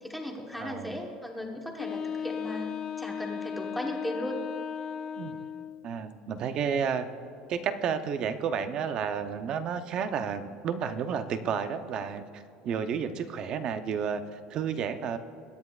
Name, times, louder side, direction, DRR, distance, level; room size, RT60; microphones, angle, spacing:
voice 1, 0.0-2.7 3.0-4.4, left 1 dB, ahead, 1 dB, 1.2 m, -36 dB
voice 2, 0.6-1.0 5.2-5.4 5.8-7.1 7.5-15.2, right 7 dB, 40° right, 10 dB, 0.6 m, -31 dB
Wind instrument woodwind instrument, 1.8-5.9, left 7 dB, 30° left, 0.3 m, -36 dB
22.5 x 9.8 x 2.4 m, 2.5 s
cardioid pair, 160°, 2 cm